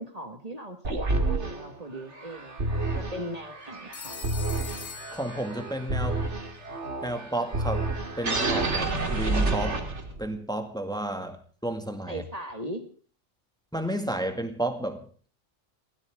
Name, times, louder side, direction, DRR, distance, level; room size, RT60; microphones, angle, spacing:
voice 1, 0.0-4.2 12.1-12.9, right 1 dB, 30° right, 1.9 m, -38 dB
sound 1, 0.8-10.3, right 2 dB, 65° right, 2.7 m, -29 dB
Telephone, 3.9-6.0, left 6 dB, 50° left, 1.8 m, -42 dB
voice 2, 5.1-6.3 7.0-9.8 10.2-12.2 13.7-15.1, right 1 dB, 5° left, 2.1 m, -32 dB
22.5 x 17.0 x 3.7 m
omnidirectional pair, 1.3 m